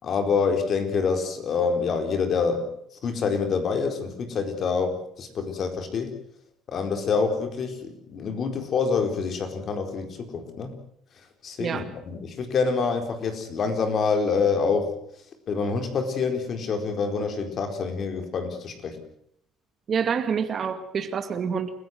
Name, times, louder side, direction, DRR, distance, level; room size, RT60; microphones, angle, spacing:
voice 1, 0.0-2.7 3.0-6.1 6.7-10.7 11.4-14.9 15.5-19.0, left 5 dB, 45° left, 4.4 m, -26 dB
voice 2, 19.9-21.7, right 6 dB, 40° right, 2.1 m, -27 dB
29.0 x 15.5 x 7.9 m
cardioid pair, 115°, 0 cm